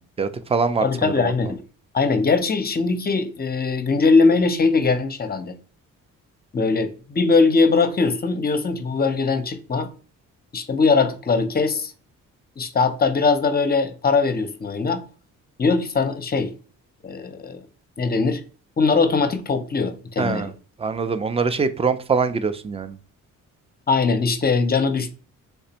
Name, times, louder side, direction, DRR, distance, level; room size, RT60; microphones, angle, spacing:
voice 1, 0.2-1.3 20.2-20.5 20.8-23.0, right 5 dB, 20° right, 0.4 m, -23 dB
voice 2, 0.8-1.6 1.9-5.5 6.5-9.9 10.5-11.9 12.6-15.0 15.6-16.5 17.0-17.6 18.0-18.4 18.8-20.5 23.9-25.1, left 4 dB, 25° left, 0.6 m, -21 dB
3.4 x 3.2 x 2.9 m
supercardioid pair, 60°, 35 cm